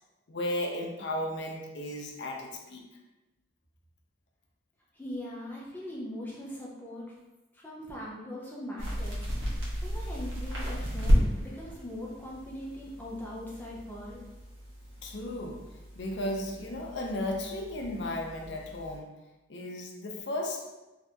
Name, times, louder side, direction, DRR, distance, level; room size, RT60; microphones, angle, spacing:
voice 1, 0.3-2.9 15.0-15.6 16.0-19.1 19.5-20.7, left 1 dB, 65° left, 1 dB, 0.5 m, -35 dB
voice 2, 4.9-7.1 7.5-9.6 9.8-14.2, left 1 dB, 10° left, -5 dB, 0.6 m, -41 dB
sound 1, 8.8-19.0, equal, 85° right, 1.0 m, -33 dB
2.7 x 2.6 x 3.4 m, 1.1 s
head